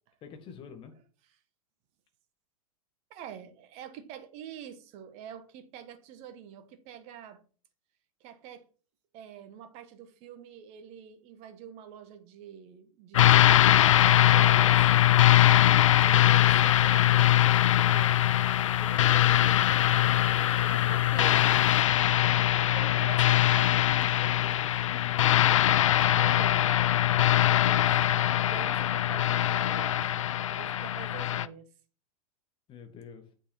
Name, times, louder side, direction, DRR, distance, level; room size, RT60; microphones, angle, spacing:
voice 1, 0.2-0.9 22.8-22.9 23.4-26.3 32.7-33.2, left 6 dB, 25° left, 1.7 m, -47 dB
voice 2, 3.1-7.4 8.2-8.6 9.1-13.6 14.1-14.8 16.0-19.6 20.4-21.7 22.0-24.1 26.2-26.7 27.6-30.2 30.5-31.7, right 9 dB, 35° right, 1.3 m, -46 dB
sound 1, 13.1-31.5, left 12 dB, 55° left, 0.4 m, -22 dB
8.2 x 6.1 x 4.4 m
figure-of-eight pair, 100°, 19 cm